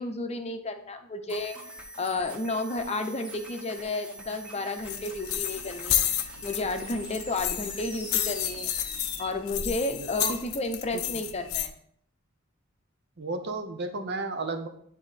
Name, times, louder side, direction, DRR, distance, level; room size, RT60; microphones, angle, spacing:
voice 1, 0.0-1.6 2.0-6.0 6.4-8.7 9.2-11.7, left 2 dB, 30° left, 7 dB, 0.7 m, -32 dB
sound 1, 1.3-9.3, right 1 dB, 5° right, 1.0 m, -43 dB
sound 2, 4.8-11.7, left 11 dB, 85° left, 0.6 m, -31 dB
voice 2, 10.0-10.4 10.9-11.0 13.2-14.7, right 3 dB, 50° right, 7 dB, 0.8 m, -33 dB
10.0 x 3.7 x 4.1 m, 0.66 s
head